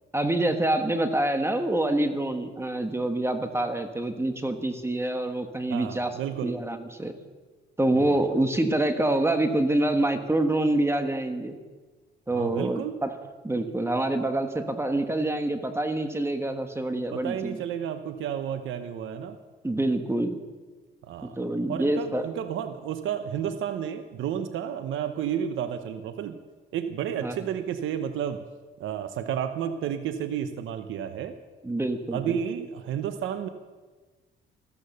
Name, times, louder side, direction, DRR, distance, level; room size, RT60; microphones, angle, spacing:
voice 1, 0.1-6.1 6.4-7.1 7.8-11.6 12.3-13.2 13.4-17.6 19.6-20.4 21.2-22.3 27.2-27.4 31.6-32.4, right 1 dB, 15° right, 7 dB, 1.4 m, -26 dB
voice 2, 5.7-6.5 7.9-8.1 12.3-13.0 17.1-19.4 21.0-21.4 21.7-26.4 26.7-28.4 28.8-31.3 32.1-33.5, right 9 dB, 80° right, 9 dB, 0.9 m, -31 dB
14.0 x 13.5 x 6.8 m, 1.3 s
cardioid pair, 90°, 20 cm